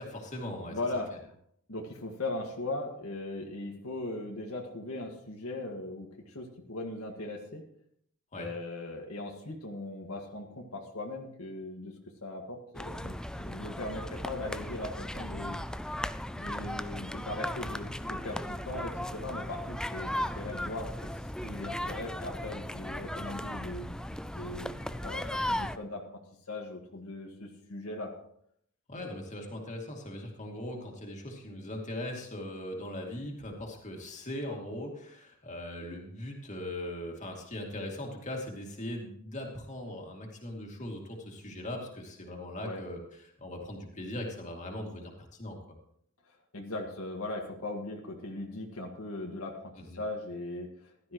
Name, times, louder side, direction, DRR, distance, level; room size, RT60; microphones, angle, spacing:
voice 1, 0.0-0.8 8.3-8.5 28.9-43.0 43.4-45.1 45.4-45.6 49.9-50.0, left 1 dB, 35° left, 0 dB, 2.5 m, -39 dB
voice 2, 0.7-1.4 1.7-7.6 8.4-11.9 12.2-15.6 16.4-21.1 21.4-24.0 24.3-26.2 26.5-28.1 42.6-42.8 46.3-51.1, left 2 dB, 75° left, 1 dB, 1.9 m, -39 dB
sound 1, 12.7-25.8, left 1 dB, 5° left, 0.3 m, -37 dB
15.0 x 12.5 x 3.1 m, 0.67 s
head